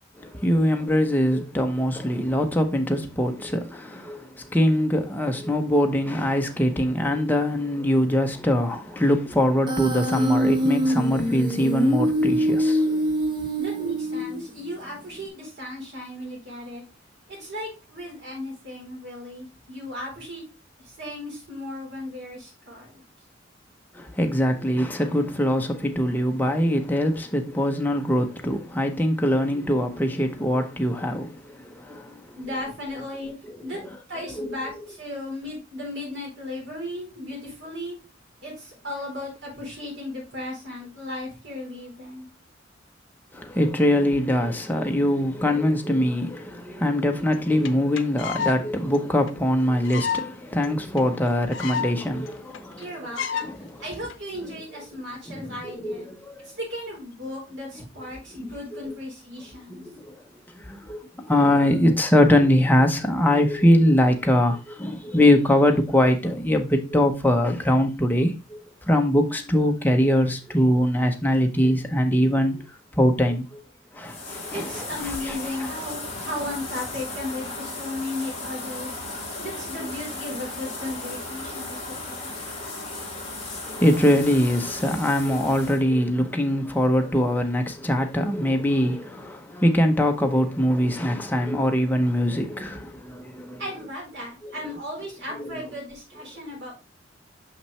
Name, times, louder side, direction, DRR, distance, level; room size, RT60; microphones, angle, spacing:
voice 1, 0.2-13.1 23.9-32.4 34.4-34.5 43.3-52.9 53.4-53.8 55.3-56.5 58.4-58.5 59.7-60.1 60.5-68.6 68.9-72.6 73.0-73.6 73.9-74.7 83.6-93.6 94.4-94.5, equal, 10° left, 0.8 m, -22 dB
Human voice, 9.7-14.6, equal, 25° right, 1.1 m, -24 dB
voice 2, 13.5-16.8 17.3-20.4 20.8-23.0 32.3-33.3 33.6-33.8 34.1-38.0 38.4-42.3 51.3-51.4 52.8-53.5 53.8-56.1 56.4-59.8 74.5-79.0 79.4-82.4 91.3-91.5 93.6-96.7, left 1 dB, 65° right, 4.2 m, -35 dB
sound 1, 47.3-47.4 47.6-47.7 48.0-48.6 48.9-49.0 49.3-49.4 49.8-50.3 50.6-50.7 51.0-51.1 51.3-51.9 52.3-52.4 52.5-52.8 53.1-53.5 54.1-54.4, left 7 dB, 75° left, 0.6 m, -29 dB
sound 2, 74.0-85.8, left 2 dB, 30° left, 2.5 m, -36 dB
5.8 x 5.7 x 3.2 m
head